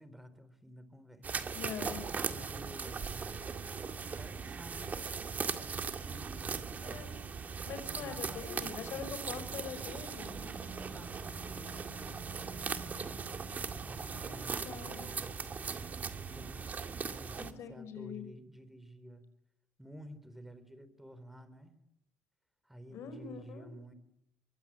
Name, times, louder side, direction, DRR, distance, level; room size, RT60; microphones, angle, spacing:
voice 1, 0.0-1.5 2.1-3.4 4.0-5.0 6.0-7.2 7.8-9.5 10.2-13.4 13.6-19.3 19.8-21.8 22.6-23.9, equal, 5° right, 12 dB, 4.0 m, -52 dB
sound 1, 1.2-17.5, right 5 dB, 35° right, 2.0 m, -39 dB
voice 2, 1.5-2.1 6.8-7.2 7.7-10.3 14.1-15.1 17.4-18.3 22.9-23.7, left 7 dB, 65° left, 10 dB, 5.5 m, -44 dB
Wind instrument woodwind instrument, 9.4-13.8, left 4 dB, 45° left, 3.9 m, -59 dB
24.5 x 23.5 x 9.0 m, 0.78 s
cardioid pair, 110°, 5 cm